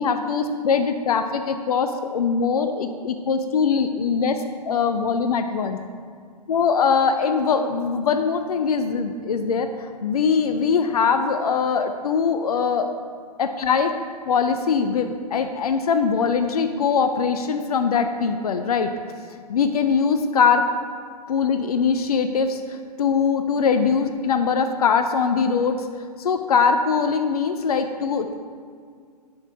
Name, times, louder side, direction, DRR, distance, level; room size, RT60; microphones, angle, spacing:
voice 1, 0.0-5.8 6.5-12.9 13.4-13.9 14.3-18.9 19.5-20.7 21.3-25.9 26.2-28.3, left 5 dB, 65° left, 8 dB, 0.5 m, -22 dB
10.5 x 4.6 x 3.6 m, 2.1 s
figure-of-eight pair, 120°, 21 cm